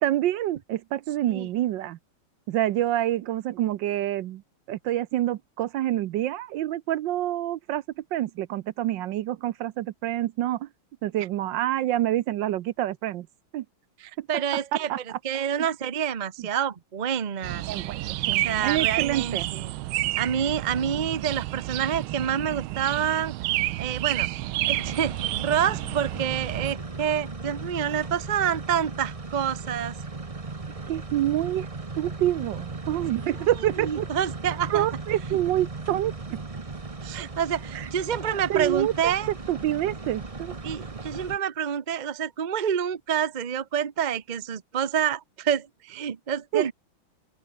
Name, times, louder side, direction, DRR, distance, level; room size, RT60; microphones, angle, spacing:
voice 1, 0.0-2.0 2.5-4.4 4.7-7.8 8.1-10.7 11.0-13.3 13.5-13.6 14.2-14.3 14.9-15.2 15.6-15.7 16.4-16.5 17.7-19.5 30.9-31.7 32.0-34.0 34.7-36.1 37.7-37.9 38.5-39.1 39.5-40.5 46.5-46.7, right 13 dB, 70° right, 1.3 m, -27 dB
voice 2, 14.0-14.9 15.2-17.6 18.4-19.7 20.2-23.3 23.8-24.3 24.7-29.9 33.8-34.9 37.0-39.3 40.6-46.7, right 8 dB, 55° right, 0.5 m, -28 dB
sound 1, 17.4-26.7, right 16 dB, 90° right, 1.5 m, -30 dB
sound 2, 24.7-41.4, right 3 dB, 20° right, 1.0 m, -37 dB
open air
omnidirectional pair, 2.3 m